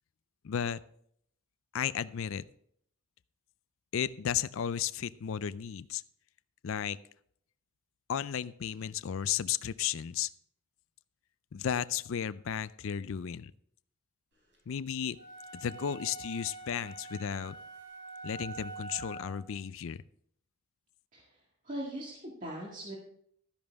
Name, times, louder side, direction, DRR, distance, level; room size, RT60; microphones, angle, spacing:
voice 1, 0.4-0.8 1.7-2.4 3.9-6.0 6.6-7.0 8.1-10.3 11.5-13.5 14.7-15.2 15.5-17.6 18.2-20.0, left 8 dB, 65° left, 16 dB, 0.4 m, -34 dB
sound 1, 15.1-19.4, right 3 dB, 60° right, 4.1 m, -45 dB
voice 2, 21.6-23.0, right 1 dB, 35° right, -4 dB, 2.1 m, -40 dB
13.0 x 10.5 x 3.5 m, 0.68 s
head